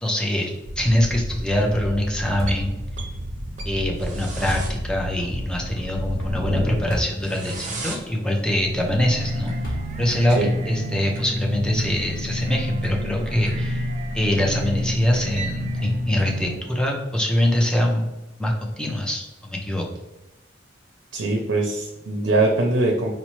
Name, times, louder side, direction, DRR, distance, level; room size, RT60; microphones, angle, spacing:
voice 1, 0.0-2.8 3.7-10.4 10.7-13.9 14.1-18.0 18.4-19.9, left 1 dB, 5° left, 0 dB, 0.4 m, -24 dB
sound 1, 0.6-16.6, equal, 40° right, 0.6 m, -30 dB
sound 2, 2.4-2.7 4.5-4.7 6.9-7.2 7.8-7.9 9.6-10.1, right 1 dB, 50° left, 1.0 m, -29 dB
voice 2, 21.1-23.1, right 2 dB, 90° right, 0 dB, 0.5 m, -22 dB
4.0 x 2.0 x 3.0 m, 1.0 s
head